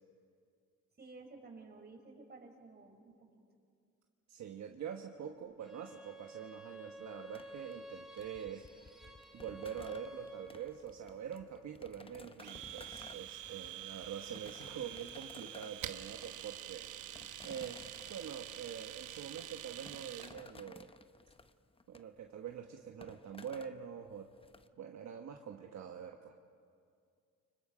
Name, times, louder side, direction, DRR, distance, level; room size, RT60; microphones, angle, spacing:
voice 1, 1.0-3.3, right 3 dB, 35° right, 2 dB, 4.8 m, -53 dB
voice 2, 4.3-8.7 9.3-17.8 18.1-20.9 21.9-24.3 24.8-26.3, right 8 dB, 65° right, 3 dB, 1.3 m, -45 dB
Bowed string instrument, 5.6-10.8, right 1 dB, ahead, 3.1 m, -52 dB
sound 1, 7.3-24.7, left 3 dB, 20° left, 0.8 m, -57 dB
Domestic sounds home sounds, 12.4-20.3, right 12 dB, 85° right, 1.0 m, -47 dB
29.5 x 25.5 x 5.0 m, 2.3 s
cardioid pair, 90°, 30 cm